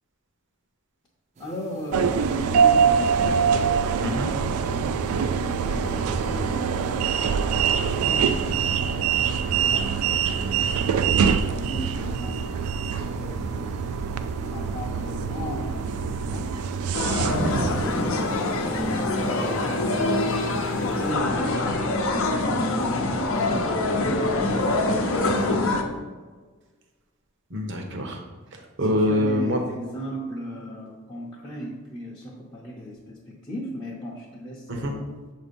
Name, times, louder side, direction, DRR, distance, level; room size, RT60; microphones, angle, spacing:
voice 1, 1.4-3.4 3.9-4.5 5.4-7.1 7.4-10.8 11.3-13.9 14.4-16.6 17.1-20.5 21.0-25.6 28.8-35.1, equal, 20° left, -5 dB, 0.7 m, -37 dB
sound 1, 1.4-21.1, right 2 dB, 30° right, 0.5 m, -41 dB
sound 2, 1.9-17.9, right 6 dB, 90° right, 0.4 m, -24 dB
sound 3, 16.9-25.8, left 2 dB, 65° left, 0.7 m, -24 dB
voice 2, 27.5-28.2 28.5-29.6 34.7-34.9, left 1 dB, 55° right, 3 dB, 0.9 m, -25 dB
7.0 x 2.8 x 5.2 m, 1.4 s
head